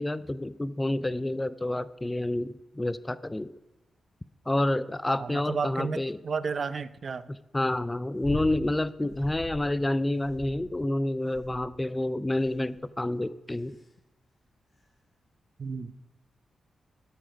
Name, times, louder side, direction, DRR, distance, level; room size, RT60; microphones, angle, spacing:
voice 1, 0.0-3.5 4.5-6.2 7.3-13.8, left 1 dB, 15° left, 15 dB, 0.4 m, -29 dB
voice 2, 5.2-7.3 15.6-15.9, right 5 dB, 55° right, 15 dB, 0.5 m, -32 dB
sound 1, 8.2-8.6 9.1-9.7 10.2-10.8 11.3-11.8 12.4-12.8 13.5-13.8 14.8-14.9, left 3 dB, 40° left, 4.3 m, -41 dB
13.0 x 6.9 x 5.1 m, 1.0 s
cardioid pair, 65°, 0 cm